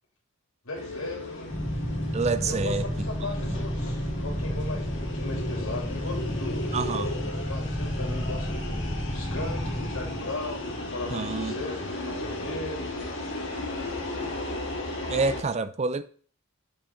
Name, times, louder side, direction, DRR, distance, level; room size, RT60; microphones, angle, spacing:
voice 1, 0.6-1.5 2.4-6.7 7.5-12.9, left 2 dB, 75° left, 2.6 m, -37 dB
sound 1, 0.7-15.4, left 2 dB, 60° left, 1.8 m, -35 dB
sound 2, 1.5-11.1, equal, 5° left, 0.8 m, -31 dB
voice 2, 2.1-2.8 6.7-7.1 11.1-11.5 15.1-16.0, right 4 dB, 30° right, 0.4 m, -27 dB
7.1 x 5.3 x 3.7 m
head